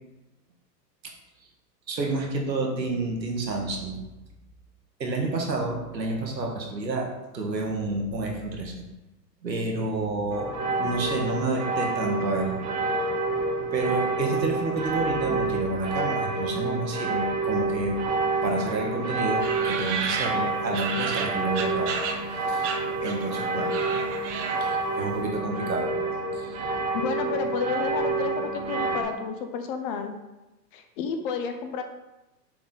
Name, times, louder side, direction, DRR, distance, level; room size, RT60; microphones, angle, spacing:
voice 1, 1.9-4.0 5.0-7.1 7.3-8.7 9.4-12.6 13.7-18.0 18.4-22.0 22.5-23.8 24.6-26.0 26.3-26.6, right 2 dB, 85° right, 2 dB, 1.5 m, -29 dB
sound 1, 10.3-29.0, right 3 dB, 15° right, 0.5 m, -28 dB
sound 2, 19.4-22.3 22.6-23.3 23.6-24.8, right 6 dB, 45° right, 0.8 m, -32 dB
voice 2, 26.9-30.1 30.7-31.8, left 5 dB, 35° left, 6 dB, 0.6 m, -31 dB
6.8 x 3.6 x 3.9 m, 1.0 s
hypercardioid pair, 110°, 50 cm